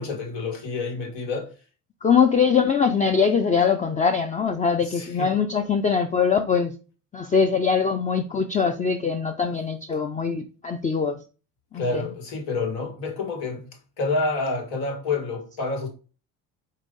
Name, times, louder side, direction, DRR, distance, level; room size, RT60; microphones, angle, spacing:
voice 1, 0.0-1.5 4.8-5.3 11.7-13.7 14.0-15.9, left 3 dB, 70° left, 1.8 m, -28 dB
voice 2, 2.0-6.7 7.1-11.2 11.7-12.0, left 6 dB, 20° left, 0.4 m, -22 dB
4.9 x 2.8 x 3.8 m
supercardioid pair, 85°, 42 cm